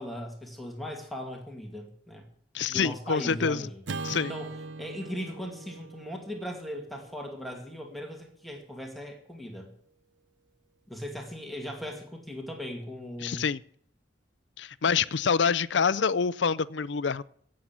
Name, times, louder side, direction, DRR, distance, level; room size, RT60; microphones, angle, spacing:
voice 1, 0.0-2.2 2.7-3.8 4.3-9.7 10.9-13.5 14.9-15.0, equal, ahead, 2.3 m, -38 dB
voice 2, 2.5-3.7 4.0-4.3 13.2-13.6 14.6-17.2, left 6 dB, 75° left, 0.5 m, -26 dB
Acoustic guitar / Strum, 3.8-8.3, right 3 dB, 85° right, 0.7 m, -41 dB
16.5 x 7.6 x 7.4 m
head